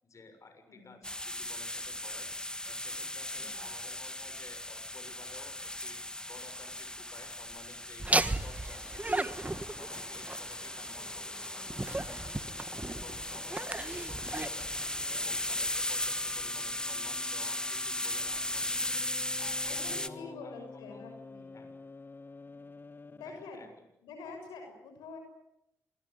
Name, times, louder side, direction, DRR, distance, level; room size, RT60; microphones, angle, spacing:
voice 1, 0.0-2.3 2.6-6.0 6.3-8.1 8.4-14.7 15.1-18.7 19.4-21.0 21.5-21.7 23.2-23.7 24.2-24.3, left 3 dB, 45° left, 7 dB, 6.7 m, -53 dB
voice 2, 0.7-1.1 3.4-3.7 19.6-21.8 23.1-23.7 24.0-25.2, left 4 dB, 75° left, 4 dB, 6.1 m, -47 dB
sound 1, 1.0-20.1, left 1 dB, 10° left, 1.8 m, -37 dB
Laughter, 8.0-15.6, right 2 dB, 20° right, 1.6 m, -36 dB
sound 2, 11.0-23.7, left 3 dB, 30° left, 1.0 m, -51 dB
26.5 x 20.5 x 9.5 m, 0.85 s
hypercardioid pair, 45°, 7 cm